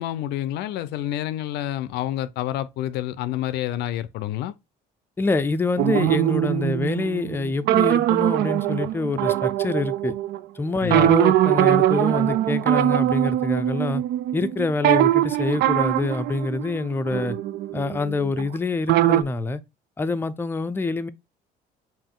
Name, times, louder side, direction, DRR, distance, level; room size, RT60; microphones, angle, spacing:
voice 1, 0.0-4.5 10.8-11.2, left 12 dB, 85° left, 0.5 m, -28 dB
voice 2, 5.2-10.1 10.6-14.0 14.3-17.4 17.7-19.6 20.0-21.1, left 3 dB, 15° left, 0.4 m, -26 dB
sound 1, 5.8-10.4 10.9-18.6 18.9-19.2, right 13 dB, 75° right, 0.4 m, -22 dB
5.2 x 2.6 x 3.7 m
cardioid pair, 110°, 17 cm